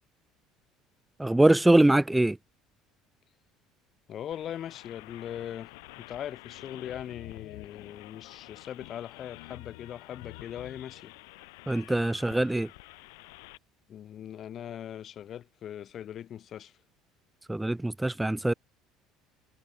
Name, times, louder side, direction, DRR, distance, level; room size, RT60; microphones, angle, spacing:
voice 1, 1.2-2.4 11.7-12.7 17.5-18.5, right 1 dB, 10° right, 0.7 m, -23 dB
voice 2, 4.1-11.1 13.9-16.8, left 10 dB, 50° left, 1.1 m, -40 dB
sound 1, 4.3-13.6, left 28 dB, 75° left, 1.0 m, -49 dB
hypercardioid pair, 65°, 0 cm